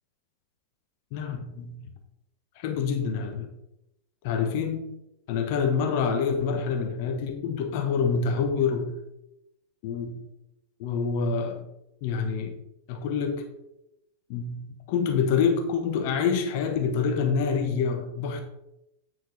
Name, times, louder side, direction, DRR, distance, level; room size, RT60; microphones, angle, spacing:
voice 1, 1.1-1.8 2.6-3.5 4.2-5.0 5.3-9.0 9.8-10.2 10.8-11.6 12.0-12.5 12.9-13.4 14.3-18.4, left 6 dB, 45° left, 5 dB, 1.0 m, -27 dB
8.9 x 6.0 x 3.2 m, 0.87 s
figure-of-eight pair, 90°, 0 cm